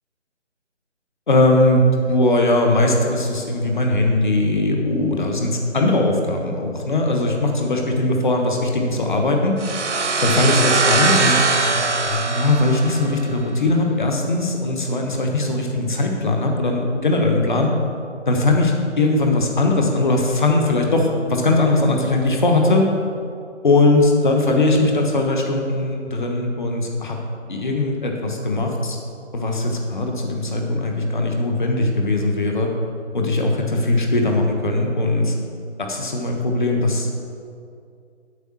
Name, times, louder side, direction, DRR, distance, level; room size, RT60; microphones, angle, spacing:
voice 1, 1.3-9.6 10.2-11.5 11.7-17.7 18.3-22.8 23.6-27.2 27.5-29.0 29.3-32.7 33.1-35.3 35.8-37.1, left 2 dB, 40° left, 2 dB, 1.2 m, -20 dB
sound 1, 9.6-13.3, right 4 dB, 70° right, 1.1 m, -21 dB
8.1 x 5.6 x 7.1 m, 2.4 s
figure-of-eight pair, 170°, 36 cm